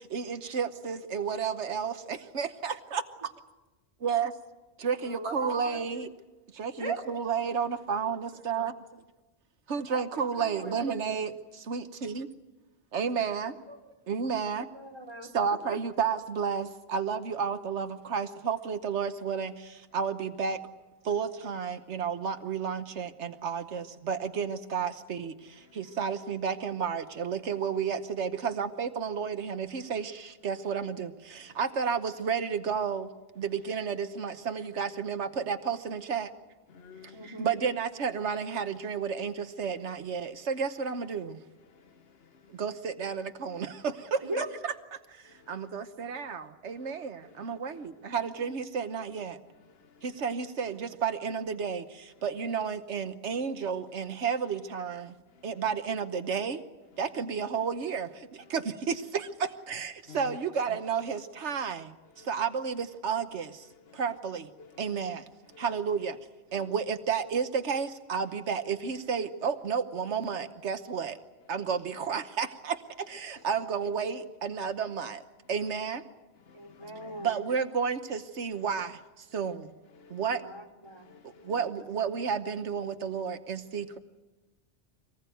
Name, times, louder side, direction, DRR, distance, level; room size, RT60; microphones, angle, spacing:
voice 1, 0.1-3.0 4.0-4.3 4.8-6.1 6.6-8.7 9.7-11.3 11.7-12.3 12.9-13.5 14.1-14.7 15.3-19.5 19.9-20.6 21.1-25.3 25.8-31.1 31.6-33.1 33.4-36.3 37.4-41.3 42.6-44.2 44.6-44.7 45.5-49.4 50.2-51.8 52.2-55.1 55.4-56.6 57.0-58.1 58.5-59.3 59.7-61.9 62.3-63.5 64.0-64.4 64.8-65.2 65.6-66.2 66.5-71.2 71.5-72.8 73.1-75.2 75.5-76.0 77.2-78.9 79.3-79.6 80.1-80.4 81.5-84.0, right 6 dB, 90° right, 8 dB, 1.4 m, -31 dB
voice 2, 5.0-5.9 6.8-7.0 9.9-10.0 10.4-10.9 13.7-13.8 14.3-15.3 15.7-15.8 37.1-37.6 44.2-44.5 76.5-77.4 80.3-81.1 81.5-81.6, right 2 dB, 25° right, 3 dB, 3.0 m, -39 dB
voice 3, 25.6-26.0 31.4-31.6 36.7-37.5 41.6-42.6 45.2-45.7 46.2-46.3 46.7-47.9 49.6-50.2 55.3-55.6 58.4-58.5 60.1-60.4 60.7-60.8 62.2-62.4 63.7-64.0 64.6-65.0 65.5-65.6 69.1-69.2 71.5-71.6 73.3-73.4 76.4-77.3 78.5-78.6 79.9-80.3 80.9-81.5, left 6 dB, 60° left, 10 dB, 1.3 m, -54 dB
25.0 x 19.5 x 9.2 m, 1.1 s
omnidirectional pair, 1.1 m